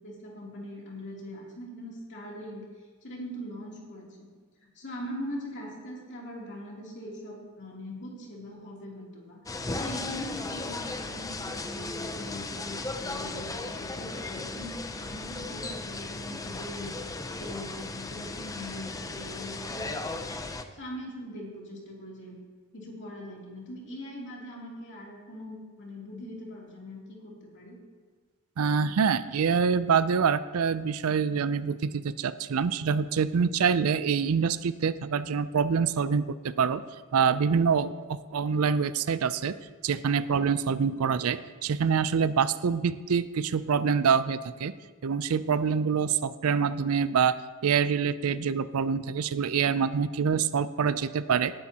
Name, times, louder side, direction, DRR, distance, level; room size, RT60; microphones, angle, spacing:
voice 1, 0.0-2.6 3.0-4.1 4.7-9.4 9.7-17.0 17.3-20.4 20.7-22.4 22.7-27.8, equal, 55° left, -3 dB, 3.0 m, -41 dB
sound 1, 9.5-20.6, left 3 dB, 15° left, 0.5 m, -36 dB
voice 2, 28.6-36.8 37.1-39.6 39.8-44.7 45.0-47.4 47.6-51.5, right 6 dB, 75° right, 15 dB, 0.5 m, -26 dB
18.5 x 10.0 x 2.9 m, 1.5 s
head